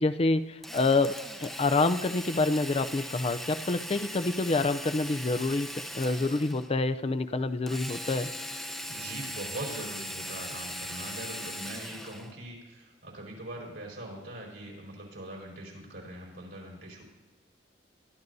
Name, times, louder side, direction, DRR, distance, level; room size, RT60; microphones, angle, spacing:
voice 1, 0.0-8.3, left 3 dB, 35° left, 11 dB, 0.5 m, -27 dB
Drill, 0.6-6.7 7.7-12.3, equal, ahead, 0.8 m, -39 dB
voice 2, 8.9-17.0, right 1 dB, 75° right, -2 dB, 4.8 m, -42 dB
22.5 x 12.5 x 2.7 m, 1.1 s
head